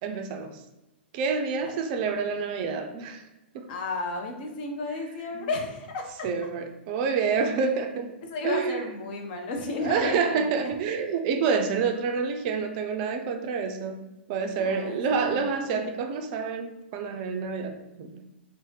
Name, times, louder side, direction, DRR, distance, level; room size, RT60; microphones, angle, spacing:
voice 1, 0.0-0.6 1.1-3.2 3.5-3.7 5.3-5.5 6.2-8.2 8.4-8.9 9.8-14.0 14.3-18.3, right 5 dB, 45° right, 5 dB, 0.3 m, -28 dB
voice 2, 3.7-6.3 8.2-10.7 14.6-15.8, left 3 dB, 50° left, 3 dB, 0.5 m, -33 dB
2.6 x 2.0 x 3.1 m, 0.99 s
figure-of-eight pair, 110°, 6 cm